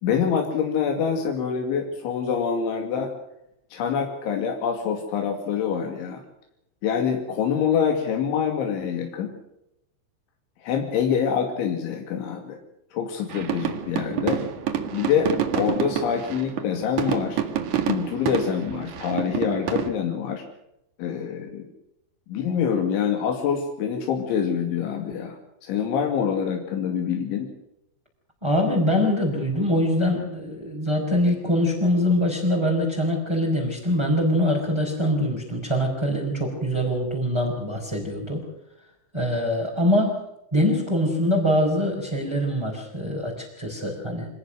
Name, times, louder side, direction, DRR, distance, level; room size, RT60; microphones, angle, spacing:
voice 1, 0.0-3.1 3.7-6.2 6.8-9.3 10.6-12.6 12.9-14.4 14.9-17.4 17.9-20.4 21.0-21.7 22.3-27.5, left 7 dB, 80° left, 3 dB, 4.9 m, -25 dB
sound 1, 13.3-19.9, right 9 dB, 55° right, 2.7 m, -28 dB
voice 2, 28.4-38.4 39.1-40.2 40.5-44.3, left 1 dB, 5° right, -3 dB, 4.9 m, -23 dB
26.0 x 19.0 x 6.4 m, 0.83 s
omnidirectional pair, 5.3 m